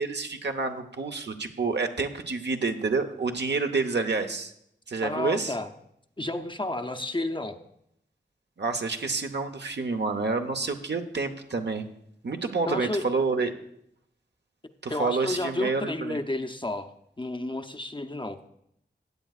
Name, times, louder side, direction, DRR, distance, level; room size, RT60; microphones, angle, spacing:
voice 1, 0.0-4.5 4.9-5.5 8.6-11.9 12.2-13.5 14.8-16.2, right 4 dB, 65° right, 6 dB, 0.9 m, -28 dB
voice 2, 5.0-5.7 6.2-7.6 12.7-13.1 14.9-18.4, left 2 dB, 25° left, 7 dB, 0.6 m, -31 dB
16.0 x 9.1 x 2.4 m, 0.74 s
wide cardioid pair, 60°, 19 cm